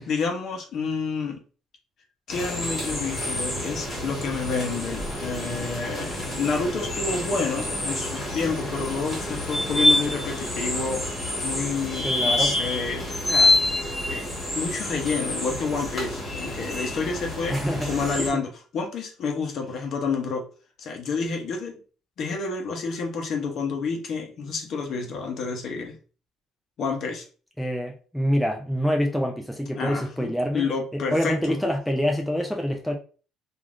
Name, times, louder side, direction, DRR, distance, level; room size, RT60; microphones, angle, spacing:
voice 1, 0.0-1.4 2.3-13.6 14.1-14.3 14.5-17.6 17.9-20.5 20.8-21.8 22.2-26.0 26.8-27.3 29.8-31.6, left 4 dB, 50° left, 0.7 m, -29 dB
sound 1, 2.3-18.3, left 1 dB, 20° left, 1.6 m, -27 dB
voice 2, 12.0-12.5 17.5-18.4 27.6-30.7 31.1-32.9, equal, ahead, 0.4 m, -26 dB
3.3 x 2.5 x 2.4 m
cardioid pair, 130°, 0 cm